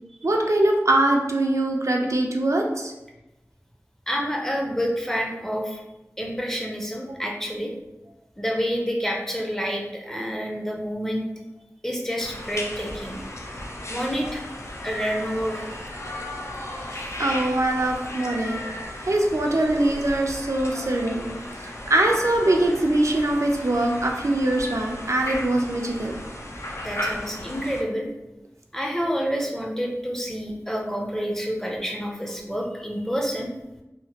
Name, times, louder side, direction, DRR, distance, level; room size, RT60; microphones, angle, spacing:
voice 1, 0.2-2.9 17.2-18.6 19.0-21.3 21.9-26.1, right 1 dB, 70° right, 1 dB, 0.4 m, -22 dB
voice 2, 4.1-5.8 6.2-7.7 8.4-11.2 11.8-13.2 13.9-14.4 14.8-15.6 26.8-28.1 28.7-33.5, equal, 10° left, -1 dB, 0.5 m, -28 dB
sound 1, 12.2-27.8, left 1 dB, 60° left, 0.5 m, -35 dB
2.8 x 2.4 x 2.8 m, 0.98 s
wide cardioid pair, 45°, 5 cm